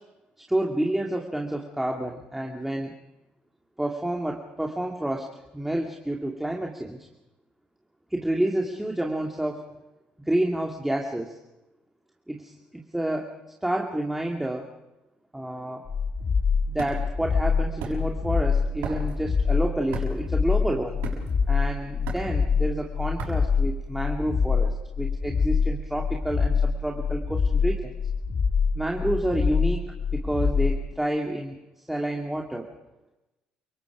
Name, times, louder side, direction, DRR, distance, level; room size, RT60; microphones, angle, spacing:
voice 1, 0.5-2.9 3.8-5.3 5.5-7.0 8.1-9.6 10.3-11.4 12.3-13.3 13.6-14.7 15.3-15.8 16.7-21.0 21.5-27.9 28.7-29.9 30.1-31.6 31.9-32.7, right 1 dB, 5° right, 1 dB, 2.4 m, -29 dB
sound 1, 15.9-30.8, left 5 dB, 40° left, 1.7 m, -25 dB
sound 2, 16.2-24.3, right 6 dB, 80° right, 6.7 m, -39 dB
29.5 x 18.0 x 5.0 m, 0.98 s
supercardioid pair, 75°, 4 cm